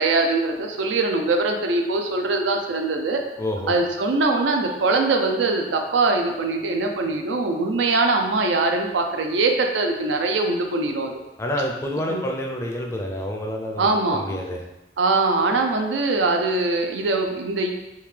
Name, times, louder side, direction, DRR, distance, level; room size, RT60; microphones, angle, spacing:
voice 1, 0.0-3.2 3.7-11.2 12.1-12.2 13.8-14.4 15.0-17.7, right 3 dB, 90° right, 3 dB, 0.5 m, -22 dB
voice 2, 3.4-3.7 11.4-14.6, left 1 dB, 15° left, 1 dB, 0.4 m, -28 dB
3.5 x 2.7 x 3.2 m, 0.97 s
head